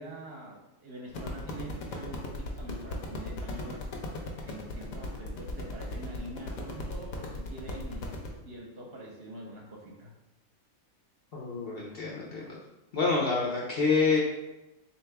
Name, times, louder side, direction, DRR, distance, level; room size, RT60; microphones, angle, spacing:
voice 1, 0.0-3.9 4.4-8.2 8.4-10.1, right 1 dB, 55° right, -2 dB, 0.9 m, -44 dB
sound 1, 1.1-8.3, left 2 dB, 80° left, 1.1 m, -38 dB
voice 2, 11.3-12.6 12.9-14.2, left 4 dB, 60° left, -3 dB, 0.7 m, -27 dB
3.6 x 2.9 x 3.3 m, 0.96 s
omnidirectional pair, 1.4 m